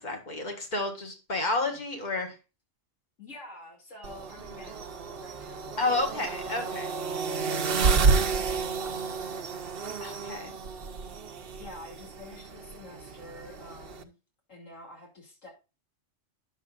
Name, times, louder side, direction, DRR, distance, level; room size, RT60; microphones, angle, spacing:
voice 1, 0.0-2.4 5.8-6.9 10.0-10.5, left 2 dB, 35° left, 4 dB, 1.7 m, -31 dB
voice 2, 3.2-7.1 7.9-11.0 11.6-14.1 14.5-15.5, left 2 dB, 80° left, -3 dB, 2.9 m, -48 dB
sound 1, 4.0-14.0, right 5 dB, 55° right, 0.8 m, -30 dB
10.0 x 7.2 x 2.4 m, 0.29 s
omnidirectional pair, 1.3 m